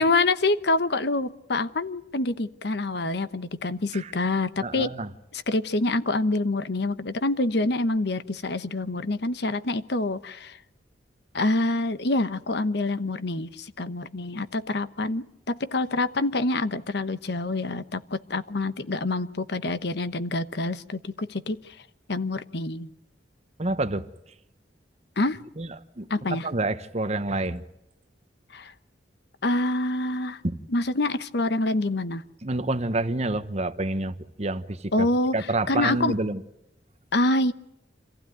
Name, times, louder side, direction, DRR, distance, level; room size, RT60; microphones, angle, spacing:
voice 1, 0.0-4.9 5.3-10.6 11.3-21.7 22.1-22.9 25.2-25.4 26.1-26.5 28.5-28.7 29.4-30.4 30.7-32.2 34.9-35.4 35.7-36.1 37.1-37.5, left 2 dB, 65° left, 12 dB, 1.0 m, -26 dB
voice 2, 4.6-5.1 23.6-24.1 25.6-27.6 30.4-30.6 32.4-35.1 35.3-36.4, right 2 dB, 35° right, 11 dB, 1.0 m, -28 dB
26.0 x 15.5 x 9.3 m, 0.85 s
head